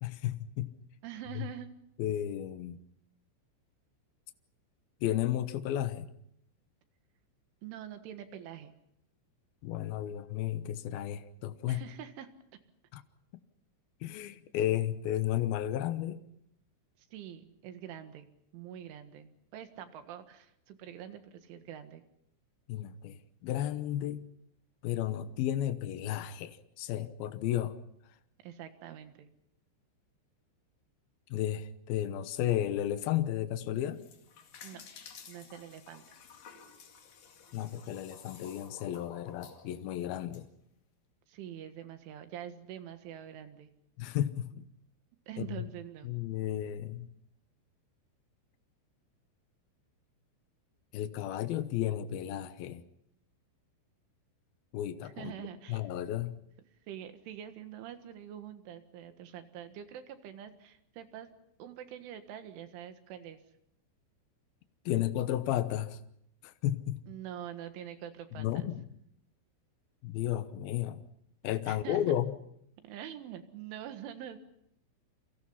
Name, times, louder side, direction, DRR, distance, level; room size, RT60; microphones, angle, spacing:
voice 1, 0.0-0.7 1.4-1.5 2.0-2.8 5.0-6.1 9.6-11.8 12.9-13.0 14.0-16.2 22.7-23.2 23.4-24.2 24.8-27.8 31.3-34.0 37.5-40.5 44.0-44.5 45.4-45.7 46.0-47.1 50.9-52.8 54.7-55.3 55.7-56.4 64.9-66.0 66.4-67.1 68.4-68.8 70.0-71.0 71.4-72.3, left 12 dB, 80° left, 11 dB, 2.1 m, -33 dB
voice 2, 1.0-1.7 7.6-8.7 11.7-12.3 17.0-18.3 18.5-22.0 28.4-29.3 34.6-34.8 35.3-36.0 41.3-43.7 44.5-44.6 45.3-46.1 55.0-55.9 56.8-61.3 61.6-63.4 67.1-68.7 71.7-72.0 72.8-74.4, right 10 dB, 75° right, 8 dB, 3.9 m, -45 dB
sound 1, 33.8-40.4, left 6 dB, 50° left, 3.3 m, -53 dB
29.5 x 24.0 x 5.7 m, 0.73 s
omnidirectional pair, 5.9 m